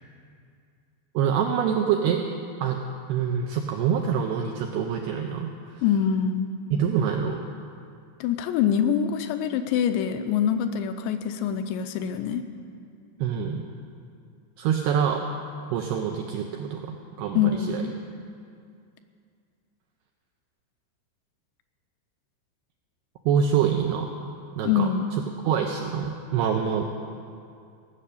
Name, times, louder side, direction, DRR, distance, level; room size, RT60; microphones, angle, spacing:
voice 1, 1.1-2.3 2.6-2.8 3.1-5.5 6.7-7.4 13.2-13.6 14.6-15.3 15.7-17.8 23.3-24.2 24.6-24.9 25.5-26.8, right 8 dB, 85° right, 2 dB, 2.3 m, -25 dB
voice 2, 5.8-6.5 8.2-12.4 17.4-17.9 24.7-25.1, left 8 dB, 80° left, 8 dB, 2.7 m, -24 dB
17.0 x 6.6 x 8.4 m, 2.3 s
omnidirectional pair, 5.4 m